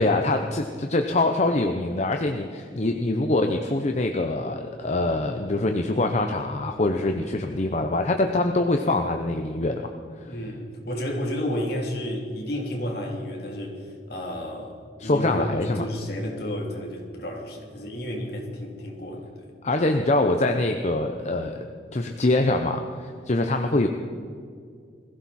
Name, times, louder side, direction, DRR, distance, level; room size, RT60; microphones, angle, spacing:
voice 1, 0.0-9.9 10.2-10.3 15.0-15.8 19.6-21.6 21.9-23.9, left 2 dB, 40° left, 5 dB, 0.8 m, -24 dB
voice 2, 10.3-19.5, equal, 60° left, 0 dB, 3.1 m, -31 dB
21.5 x 15.5 x 4.3 m, 2.2 s
head